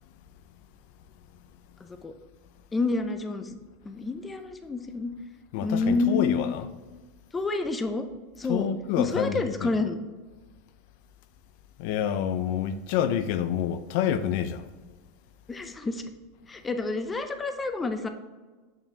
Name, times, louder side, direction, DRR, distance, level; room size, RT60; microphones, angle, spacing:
voice 1, 2.7-3.6 3.8-5.1 5.6-6.5 7.3-8.1 8.4-8.7 9.0-10.0 15.5-16.0 16.5-18.1, left 3 dB, 15° left, 0.6 m, -28 dB
voice 2, 5.5-6.6 8.5-9.7 11.8-14.7, left 9 dB, 65° left, 0.4 m, -28 dB
6.8 x 5.7 x 2.8 m
supercardioid pair, 120°, 0 cm